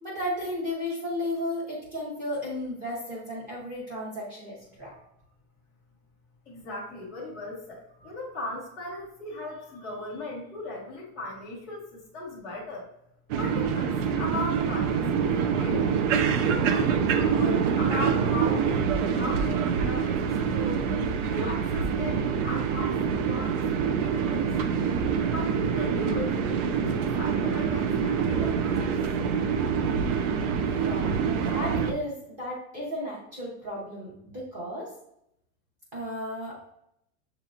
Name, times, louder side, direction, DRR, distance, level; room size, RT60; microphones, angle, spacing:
voice 1, 0.0-4.9 30.6-34.9 35.9-36.7, left 1 dB, 20° right, -5 dB, 0.9 m, -34 dB
voice 2, 6.5-12.8 13.4-15.9 16.4-20.8 21.3-23.0 23.3-24.5 25.3-28.9, left 2 dB, 5° left, -14 dB, 0.3 m, -37 dB
sound 1, 13.3-31.9, right 6 dB, 60° right, 0.6 m, -26 dB
6.9 x 2.9 x 2.5 m, 0.76 s
supercardioid pair, 175°, 42 cm